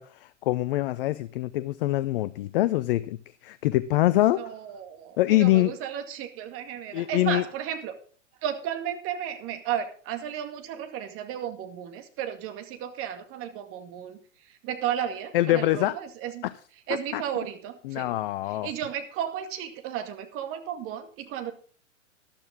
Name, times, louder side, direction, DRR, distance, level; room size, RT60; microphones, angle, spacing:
voice 1, 0.0-3.2 3.4-4.5 5.2-5.7 6.9-7.4 15.3-16.0 16.4-16.5 17.1-17.2 17.8-18.7, left 16 dB, 45° left, 14 dB, 0.7 m, -24 dB
voice 2, 4.3-8.0 8.4-14.2 14.4-16.4 16.9-18.2 18.5-21.5, right 9 dB, 35° right, 8 dB, 2.1 m, -34 dB
13.5 x 12.0 x 3.7 m, 0.42 s
figure-of-eight pair, 105°, 37 cm